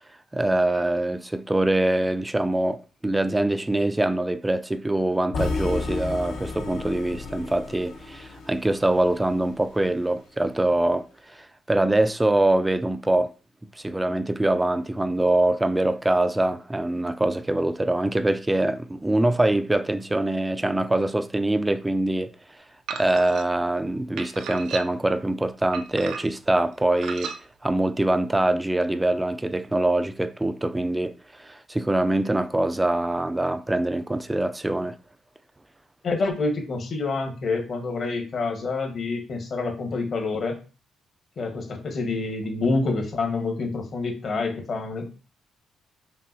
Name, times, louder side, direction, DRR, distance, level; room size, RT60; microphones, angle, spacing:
voice 1, 0.3-13.3 13.8-22.3 22.9-27.3 27.6-35.0, right 1 dB, 15° right, 0.3 m, -24 dB
sound 1, 5.3-9.4, left 3 dB, 85° left, 1.2 m, -32 dB
sound 2, 22.9-23.4 24.2-25.1 25.7-26.5 27.0-27.4, right 6 dB, 80° right, 0.5 m, -35 dB
voice 2, 36.0-40.6 41.4-45.1, left 3 dB, 50° left, 1.2 m, -27 dB
5.4 x 2.7 x 2.7 m
cardioid pair, 90°, 0 cm